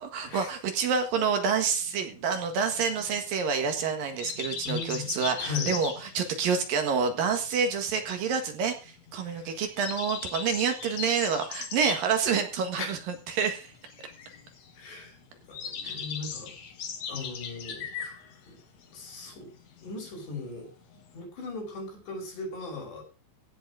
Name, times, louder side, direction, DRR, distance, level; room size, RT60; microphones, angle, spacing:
voice 1, 0.0-13.7 15.8-16.0, right 6 dB, 60° right, 6 dB, 3.1 m, -28 dB
sound 1, 1.7-21.2, left 6 dB, 50° left, 2.3 m, -39 dB
voice 2, 4.6-5.1 5.4-5.7 9.2-9.5 12.8-12.9 14.8-15.2 15.5-16.5 17.1-18.1 18.5-18.6 18.9-19.5 19.8-20.7 21.1-23.0, left 3 dB, 75° left, 0 dB, 7.8 m, -38 dB
16.0 x 6.9 x 5.0 m, 0.33 s
omnidirectional pair, 5.0 m